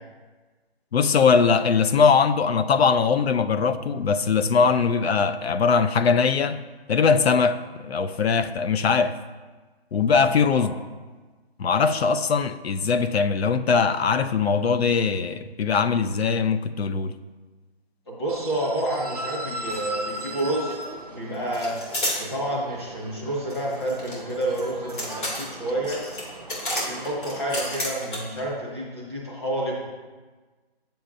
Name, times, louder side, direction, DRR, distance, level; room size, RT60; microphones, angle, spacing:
voice 1, 0.9-6.6 6.9-9.2 9.9-10.7 11.6-17.1, left 5 dB, 75° left, 12 dB, 0.5 m, -21 dB
voice 2, 18.1-20.8 21.0-21.8 22.2-26.0 26.7-29.8, right 1 dB, 25° left, -5 dB, 1.5 m, -29 dB
sound 1, 18.3-27.9, right 1 dB, 40° right, 0.4 m, -38 dB
sound 2, 19.7-19.8 20.1-20.9 21.5-22.2 23.5-28.4, left 1 dB, 55° left, 2.5 m, -31 dB
8.9 x 7.0 x 2.6 m, 1.3 s
hypercardioid pair, 180°, 31 cm